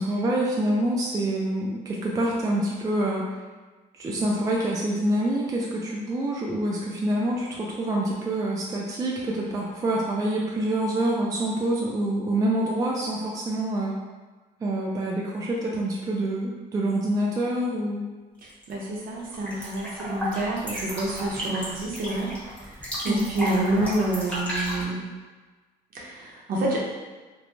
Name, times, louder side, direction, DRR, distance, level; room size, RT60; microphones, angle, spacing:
voice 1, 0.0-3.4 3.9-14.0 14.6-18.1 23.1-23.3, right 1 dB, 20° right, -3 dB, 0.3 m, -26 dB
sound 1, 18.5-18.8 19.1-24.8, equal, 10° left, 1.0 m, -34 dB
voice 2, 18.7-22.3 22.7-22.8 23.0-25.0 25.9-26.8, right 1 dB, 60° right, -3 dB, 0.7 m, -28 dB
2.5 x 2.1 x 3.0 m, 1.3 s
cardioid pair, 110°, 17 cm